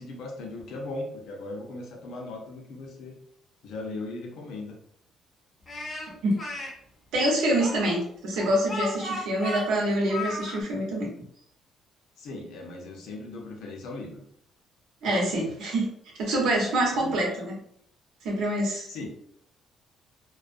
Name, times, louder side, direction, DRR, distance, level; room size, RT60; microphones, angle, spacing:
voice 1, 0.0-3.2 3.6-4.8 12.2-14.2 16.9-17.1 18.9-19.1, left 2 dB, 65° left, 0 dB, 0.6 m, -38 dB
Speech, 5.7-6.7 7.6-10.6, left 1 dB, 20° left, 0.6 m, -35 dB
voice 2, 7.1-11.1 15.0-15.9 16.2-17.6 18.2-18.9, right 1 dB, 75° right, -2 dB, 0.9 m, -26 dB
2.3 x 2.1 x 2.5 m, 0.67 s
cardioid pair, 165°, 0 cm